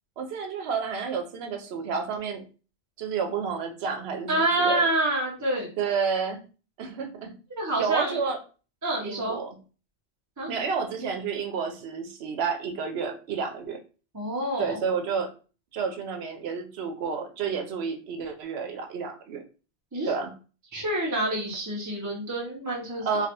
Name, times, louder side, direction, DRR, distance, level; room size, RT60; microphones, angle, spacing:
voice 1, 0.2-2.5 3.0-4.9 5.8-6.4 6.8-7.3 7.8-8.4 9.0-9.6 10.5-13.8 14.6-15.3 15.7-19.4 20.0-20.3 23.1-23.3, right 5 dB, 75° right, 5 dB, 0.8 m, -30 dB
voice 2, 4.3-5.7 7.5-8.2 8.8-9.4 10.4-10.5 14.1-14.8 19.9-20.1 20.7-23.1, right 1 dB, 20° right, -4 dB, 0.6 m, -27 dB
3.2 x 2.2 x 2.8 m, 0.36 s
omnidirectional pair, 1.1 m